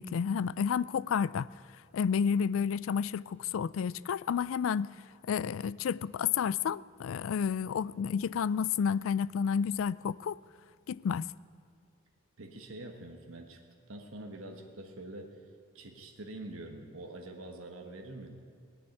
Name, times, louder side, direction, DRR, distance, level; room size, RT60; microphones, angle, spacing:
voice 1, 0.0-1.5 1.9-4.9 5.3-10.4 10.9-11.3, left 7 dB, 75° left, 0.3 m, -30 dB
voice 2, 12.4-13.6 13.9-15.4 15.7-18.4, right 2 dB, 90° right, 1.4 m, -45 dB
18.5 x 7.1 x 9.9 m
head